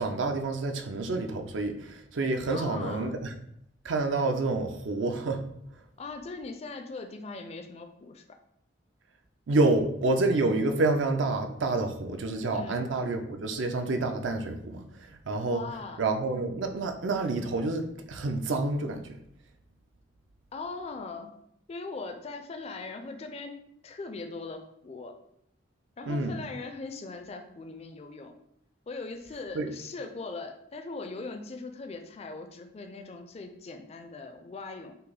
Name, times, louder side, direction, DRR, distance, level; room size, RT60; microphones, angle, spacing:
voice 1, 0.0-3.3 3.8-5.4 9.5-15.6 16.0-19.2 26.1-26.4 29.5-29.7, right 2 dB, 70° right, 0.5 m, -28 dB
voice 2, 2.5-3.1 6.0-8.2 12.5-12.8 15.5-16.0 20.5-21.3 21.7-23.6 23.8-25.2 26.0-28.3 28.9-34.9, left 3 dB, 35° left, 0.4 m, -40 dB
5.5 x 2.0 x 3.9 m
head